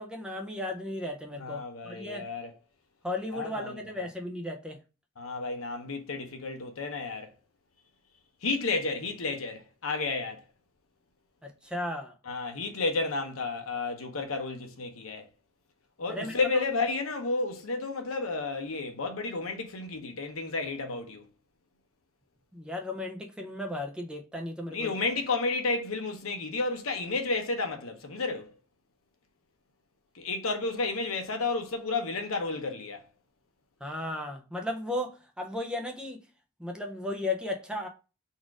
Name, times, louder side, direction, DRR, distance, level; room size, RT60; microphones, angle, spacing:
voice 1, 0.0-2.3 3.0-4.8 11.4-12.1 16.1-16.6 22.5-24.9 33.8-36.2 36.6-37.9, left 1 dB, 5° right, 0.5 m, -35 dB
voice 2, 1.4-2.5 3.3-4.1 5.2-7.3 8.4-10.4 12.3-15.3 16.0-21.3 24.7-28.5 30.1-33.0, left 3 dB, 80° left, 0.8 m, -32 dB
4.1 x 2.4 x 4.6 m
head